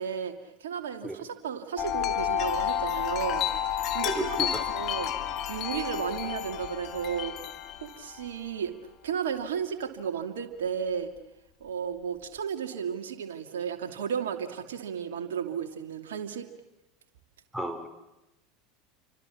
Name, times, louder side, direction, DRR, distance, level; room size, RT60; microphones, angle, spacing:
voice 1, 0.0-5.1 5.5-7.4 7.8-8.7 9.0-11.1 11.6-16.5, right 7 dB, 75° right, 5 dB, 2.5 m, -34 dB
Wind chime, 1.8-8.3, left 10 dB, 45° left, 2.9 m, -31 dB
voice 2, 4.0-4.5 17.5-17.9, right 2 dB, 5° right, 7 dB, 3.4 m, -33 dB
29.5 x 25.0 x 7.3 m, 0.99 s
hypercardioid pair, 80°, 0 cm